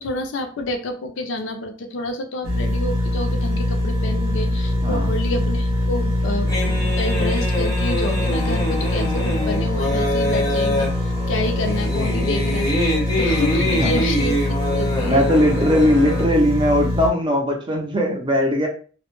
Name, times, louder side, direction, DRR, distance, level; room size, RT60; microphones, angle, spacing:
voice 1, 0.0-14.3 14.6-15.3, left 2 dB, 80° left, 5 dB, 0.4 m, -28 dB
sound 1, 2.4-17.1, left 1 dB, 75° right, 0.6 m, -23 dB
sound 2, 6.5-16.3, left 1 dB, 20° left, 0.6 m, -25 dB
voice 2, 15.0-18.7, equal, 25° right, 1 dB, 0.5 m, -19 dB
2.1 x 2.0 x 2.9 m, 0.40 s
head